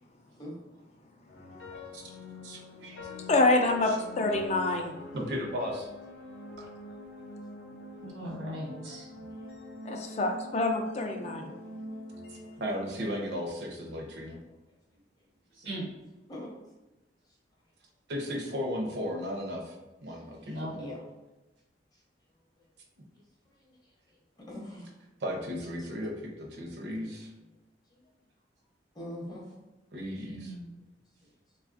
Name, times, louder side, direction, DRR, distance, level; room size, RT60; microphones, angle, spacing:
sound 1, 1.3-13.6, left 2 dB, 65° left, 0.7 m, -44 dB
voice 1, 2.4-3.0 5.1-5.9 6.6-6.7 9.1-9.3 12.3-14.4 18.1-19.8 20.0-20.8 25.2-27.3 29.9-30.6, equal, 65° right, 1 dB, 0.6 m, -35 dB
voice 2, 3.3-4.9 9.8-11.5, left 2 dB, 35° left, 3 dB, 0.3 m, -26 dB
voice 3, 8.0-9.1 15.6-15.8 20.5-20.8 30.3-30.8, equal, 90° right, -3 dB, 1.1 m, -38 dB
voice 4, 16.3-16.6 20.7-21.0 24.4-24.9 28.9-29.4, left 1 dB, 20° left, -3 dB, 0.7 m, -42 dB
3.2 x 2.3 x 2.4 m, 1.0 s
head